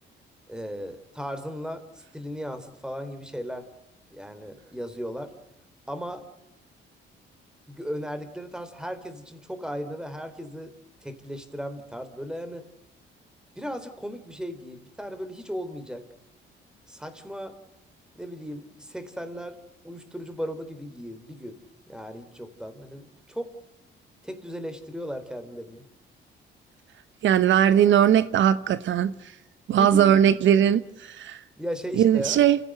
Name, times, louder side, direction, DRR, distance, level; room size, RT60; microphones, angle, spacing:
voice 1, 0.5-3.7 4.1-5.3 5.9-6.2 7.7-10.7 11.0-12.7 13.6-16.0 16.9-17.5 18.1-19.6 19.8-21.6 21.9-23.5 24.2-25.8 29.7-30.2 31.6-32.4, equal, 5° right, 3.8 m, -36 dB
voice 2, 27.2-29.1 29.7-31.4 32.0-32.6, right 9 dB, 70° right, 1.0 m, -19 dB
29.0 x 16.0 x 7.9 m
cardioid pair, 90°, 20 cm